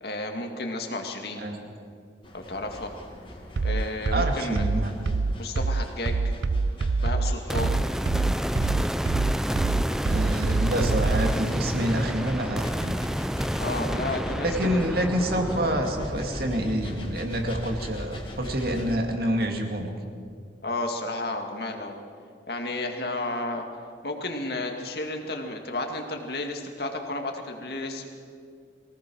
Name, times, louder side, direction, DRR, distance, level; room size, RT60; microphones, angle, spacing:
voice 1, 0.0-1.4 2.3-2.9 3.6-4.7 5.4-6.2 7.0-7.7 13.6-14.8 20.6-22.0 22.5-23.6 24.0-28.2, left 2 dB, 55° left, 3 dB, 2.3 m, -32 dB
sound 1, 2.2-18.9, left 1 dB, 25° left, 2.1 m, -41 dB
sound 2, 3.6-11.4, right 3 dB, 70° right, 0.5 m, -25 dB
voice 2, 4.1-5.0 10.1-13.0 14.4-19.9, equal, 55° right, 3 dB, 2.3 m, -27 dB
sound 3, 7.5-18.8, equal, 5° right, 0.4 m, -30 dB
23.5 x 17.5 x 6.4 m, 2.2 s
head